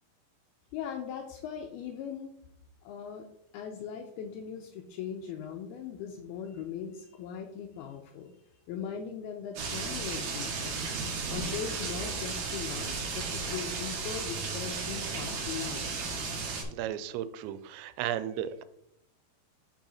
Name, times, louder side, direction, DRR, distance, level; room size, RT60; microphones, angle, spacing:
voice 1, 0.7-2.3 2.8-3.3 3.5-8.3 8.7-11.0 11.3-15.9, left 7 dB, 90° left, 4 dB, 2.2 m, -39 dB
sound 1, 9.6-16.6, right 4 dB, 60° right, 1.9 m, -34 dB
voice 2, 16.7-18.6, right 11 dB, 90° right, 13 dB, 2.9 m, -34 dB
6.3 x 6.2 x 4.2 m, 0.76 s
omnidirectional pair, 5.0 m